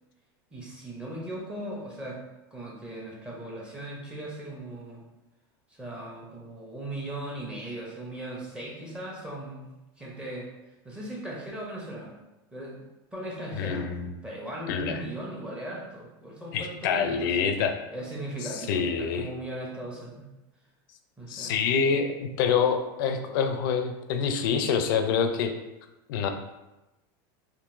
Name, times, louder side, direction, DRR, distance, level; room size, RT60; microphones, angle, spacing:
voice 1, 0.5-2.2 2.5-5.0 5.7-10.5 10.8-12.1 12.5-12.8 13.1-13.9 14.2-17.6 17.9-20.3 21.2-21.6 21.9-22.0, right 1 dB, 10° right, -4 dB, 0.6 m, -38 dB
voice 2, 13.6-14.1 14.7-15.0 16.5-17.8 18.7-19.3 21.3-25.5 26.1-26.3, left 6 dB, 65° left, 7 dB, 0.4 m, -26 dB
3.7 x 2.5 x 2.5 m, 0.99 s
supercardioid pair, 160°, 12 cm